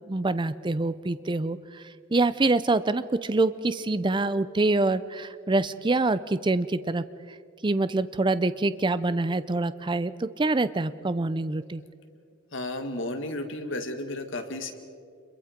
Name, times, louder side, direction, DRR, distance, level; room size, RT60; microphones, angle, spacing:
voice 1, 0.1-1.8 2.1-7.0 7.6-11.8, right 2 dB, 20° right, 14 dB, 0.5 m, -25 dB
voice 2, 12.5-14.7, left 1 dB, 60° left, 5 dB, 2.0 m, -33 dB
27.5 x 22.5 x 5.1 m, 2.3 s
head